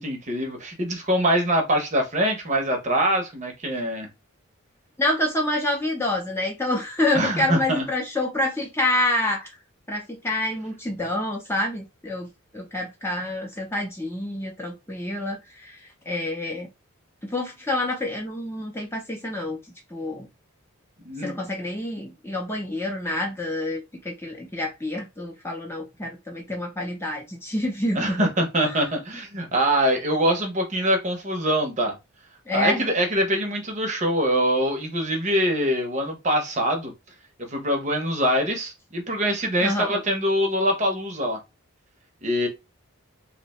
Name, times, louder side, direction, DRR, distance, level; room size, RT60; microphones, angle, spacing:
voice 1, 0.0-4.1 7.1-7.8 21.0-21.4 27.9-32.0 32.5-36.9 37.5-41.4 42.2-42.5, equal, 30° right, 0.7 m, -24 dB
voice 2, 5.0-9.5 9.9-15.8 16.1-16.7 17.2-19.6 19.9-20.3 21.2-28.3 32.5-32.8 39.6-39.9, left 1 dB, 10° left, 0.5 m, -27 dB
2.7 x 2.1 x 4.1 m
head